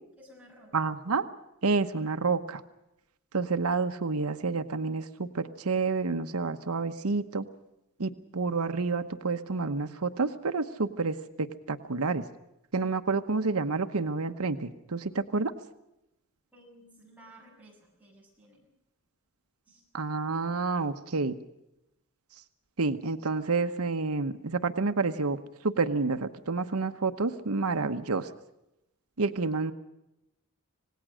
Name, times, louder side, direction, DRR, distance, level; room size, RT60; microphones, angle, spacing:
voice 1, 0.2-0.9 16.5-18.7 19.7-19.8, right 1 dB, 5° right, -3 dB, 7.2 m, -55 dB
voice 2, 0.7-1.2 1.6-2.6 3.3-7.4 8.0-12.2 12.7-15.5 19.9-21.3 22.8-25.4 25.6-28.3 29.2-29.7, right 4 dB, 85° right, 9 dB, 1.0 m, -29 dB
26.5 x 18.5 x 6.3 m, 0.89 s
head